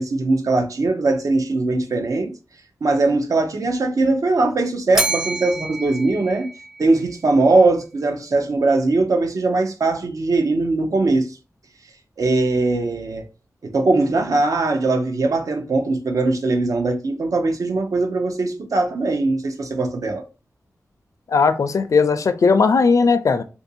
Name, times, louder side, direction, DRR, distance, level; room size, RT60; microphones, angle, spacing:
voice 1, 0.0-2.3 2.8-6.5 6.8-11.4 12.2-13.2 13.6-20.2, right 3 dB, 65° right, 0.7 m, -20 dB
Bell, 4.9-7.2, right 2 dB, 10° right, 0.6 m, -27 dB
voice 2, 21.3-23.4, left 4 dB, 60° left, 0.4 m, -17 dB
3.6 x 2.6 x 2.7 m
wide cardioid pair, 100°, 6 cm